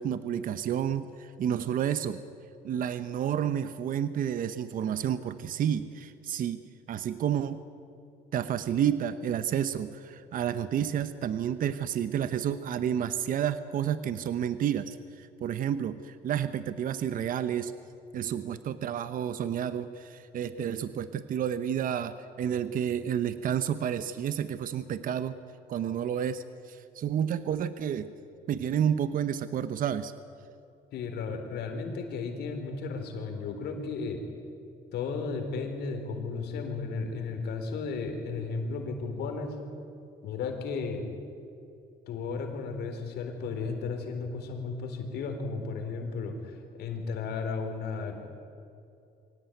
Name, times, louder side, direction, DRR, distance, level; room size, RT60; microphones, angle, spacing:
voice 1, 0.0-2.2 2.6-6.6 6.9-7.6 8.3-17.7 18.1-25.4 25.7-28.1 28.5-30.1, right 9 dB, 55° right, 12 dB, 1.0 m, -30 dB
voice 2, 30.9-34.2 34.9-39.6 40.2-41.1 42.1-48.3, left 4 dB, 75° left, 5 dB, 3.9 m, -34 dB
24.0 x 17.0 x 9.2 m, 2.6 s
cardioid pair, 110°, 17 cm